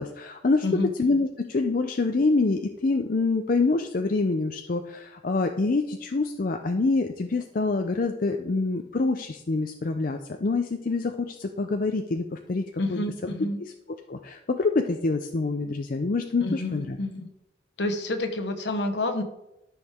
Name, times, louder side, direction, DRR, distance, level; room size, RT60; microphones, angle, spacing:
voice 1, 0.0-13.0 13.6-13.7 14.1-17.0, left 3 dB, 50° left, 5 dB, 0.5 m, -26 dB
voice 2, 12.8-13.6 16.4-17.3 17.8-19.2, left 2 dB, 70° left, 6 dB, 1.2 m, -28 dB
13.0 x 6.2 x 3.5 m, 0.88 s
head